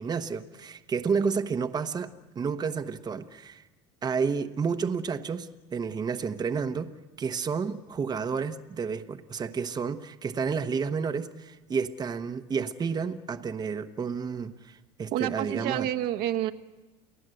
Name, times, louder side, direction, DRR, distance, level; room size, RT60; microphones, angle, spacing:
voice 1, 0.0-3.6 4.0-6.9 7.2-15.9, right 5 dB, 25° right, 8 dB, 1.1 m, -31 dB
voice 2, 15.1-16.5, right 13 dB, 60° right, 6 dB, 1.3 m, -28 dB
29.5 x 18.0 x 7.9 m, 1.2 s
supercardioid pair, 115°, 17 cm